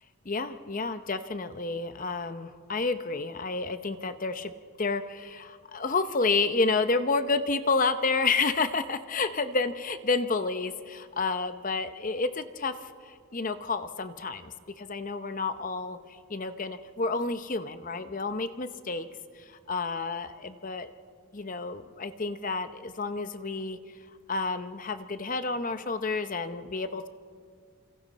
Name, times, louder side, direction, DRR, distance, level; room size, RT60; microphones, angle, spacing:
voice 1, 0.2-4.5 4.8-12.7 13.1-19.1 19.4-20.9 21.3-23.8 24.3-27.1, left 3 dB, 35° left, 10 dB, 0.7 m, -30 dB
29.0 x 26.5 x 4.1 m, 2.1 s
head